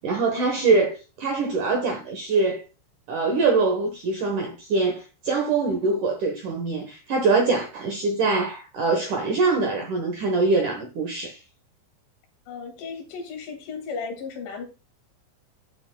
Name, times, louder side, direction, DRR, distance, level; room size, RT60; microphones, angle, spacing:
voice 1, 0.0-2.6 3.1-11.4, right 3 dB, 75° right, 1.8 m, -23 dB
voice 2, 12.5-14.7, left 5 dB, 90° left, 4.5 m, -35 dB
13.0 x 6.6 x 2.2 m
omnidirectional pair, 5.4 m